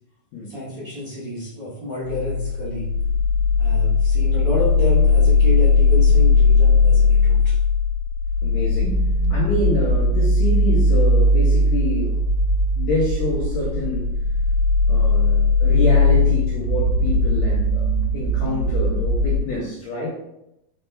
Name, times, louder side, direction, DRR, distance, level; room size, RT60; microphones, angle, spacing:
voice 1, 0.5-2.9 3.6-7.5, left 1 dB, 60° right, -10 dB, 1.1 m, -29 dB
sound 1, 2.1-19.4, left 3 dB, 85° right, 2.1 m, -18 dB
voice 2, 8.4-9.0 9.3-12.2 12.8-14.1 14.9-20.1, left 1 dB, 75° left, -4 dB, 1.6 m, -27 dB
5.1 x 2.1 x 3.2 m, 0.85 s
omnidirectional pair, 3.7 m